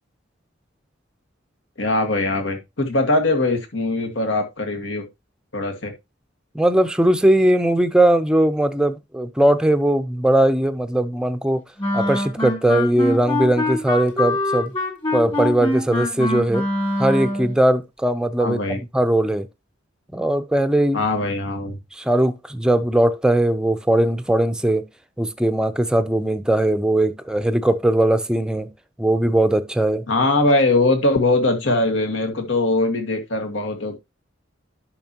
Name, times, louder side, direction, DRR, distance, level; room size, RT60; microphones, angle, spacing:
voice 1, 1.8-5.1 5.5-5.9 18.4-18.8 20.9-21.8 30.1-34.0, left 2 dB, 75° left, 1.8 m, -21 dB
voice 2, 6.5-11.6 11.9-14.7 15.1-16.7 17.0-19.5 20.1-21.0 22.0-24.8 25.2-28.7 29.0-30.0, right 1 dB, 5° right, 0.6 m, -19 dB
Wind instrument woodwind instrument, 11.8-17.5, left 1 dB, 25° left, 2.1 m, -24 dB
10.5 x 5.9 x 2.9 m
head